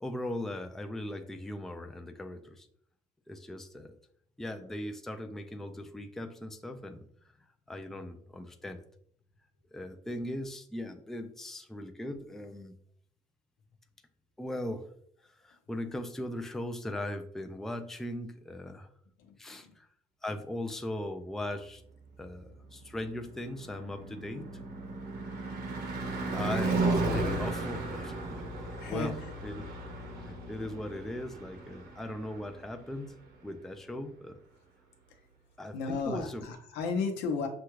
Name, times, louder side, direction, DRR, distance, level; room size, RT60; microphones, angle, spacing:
voice 1, 0.0-2.7 3.3-4.0 4.4-7.0 7.7-8.8 9.7-12.7 14.4-14.9 15.2-18.9 19.4-19.9 20.2-21.8 22.2-24.6 26.3-29.2 29.4-29.6 30.0-33.2 33.4-34.4 35.6-36.5, left 1 dB, ahead, 5 dB, 0.4 m, -39 dB
voice 2, 19.2-19.6 28.8-29.3 35.1-35.2 35.7-37.5, left 4 dB, 90° left, 4 dB, 0.8 m, -34 dB
Car passing by / Truck / Engine, 22.7-32.9, right 2 dB, 70° right, 1.1 m, -35 dB
6.1 x 2.3 x 3.1 m, 0.64 s
cardioid pair, 110°, 17 cm